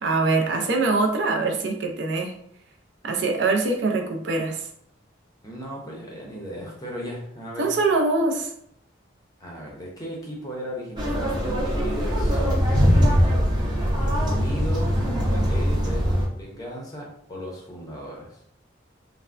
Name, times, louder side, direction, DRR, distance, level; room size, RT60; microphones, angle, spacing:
voice 1, 0.0-2.4 3.0-4.7 7.6-8.5, right 3 dB, 60° right, 3 dB, 0.4 m, -23 dB
voice 2, 5.4-7.7 9.4-13.4 14.2-18.4, equal, 20° left, -1 dB, 0.6 m, -37 dB
sound 1, 11.0-16.2, equal, 20° right, 0.6 m, -21 dB
3.3 x 2.1 x 2.4 m, 0.70 s
head